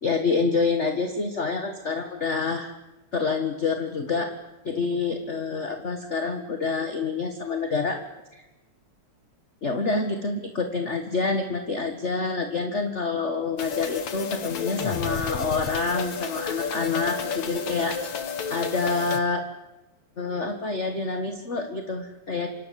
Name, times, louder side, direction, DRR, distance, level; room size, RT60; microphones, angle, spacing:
voice 1, 0.0-2.7 3.1-4.3 4.6-8.0 8.3-8.4 9.6-18.0 18.5-19.4 20.2-22.5, left 4 dB, 30° left, 6 dB, 1.4 m, -27 dB
sound 1, 13.6-19.2, left 6 dB, 65° left, 3.4 m, -31 dB
28.5 x 26.0 x 7.7 m, 1.0 s
omnidirectional pair, 3.5 m